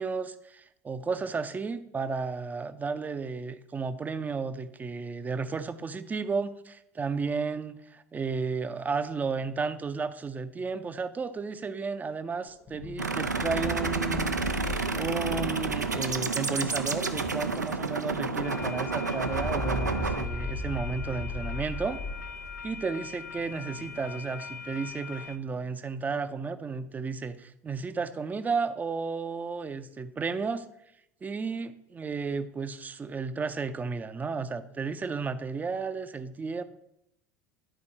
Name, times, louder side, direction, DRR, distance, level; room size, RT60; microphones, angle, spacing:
voice 1, 0.0-22.0 22.6-30.7 31.2-36.6, right 4 dB, 20° right, 12 dB, 0.5 m, -33 dB
sound 1, 12.5-17.9 18.1-18.2 18.5-22.8, left 2 dB, 30° left, 0.9 m, -37 dB
sound 2, 13.0-20.2, right 4 dB, 90° right, 0.4 m, -30 dB
sound 3, 18.4-25.4, left 5 dB, 80° left, 0.5 m, -42 dB
11.0 x 4.4 x 4.2 m, 0.79 s
figure-of-eight pair, 70°, 9 cm